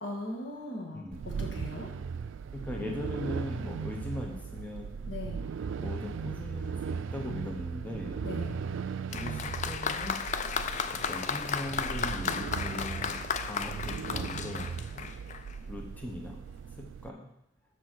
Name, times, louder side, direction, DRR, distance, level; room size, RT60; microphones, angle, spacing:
voice 1, 0.0-1.9 5.1-5.4 8.2-8.6, left 1 dB, 70° left, 0 dB, 1.6 m, -39 dB
sound 1, 1.1-17.1, right 6 dB, 80° right, 0.3 m, -38 dB
voice 2, 2.5-4.9 5.8-8.2 9.1-10.2 10.5-14.7 14.9-15.1 15.7-16.4 16.8-17.2, left 1 dB, 10° left, 0 dB, 0.8 m, -40 dB
Applause, 9.1-15.6 16.5-16.6, left 6 dB, 40° left, 0.4 m, -34 dB
6.7 x 4.5 x 6.2 m, 0.85 s
head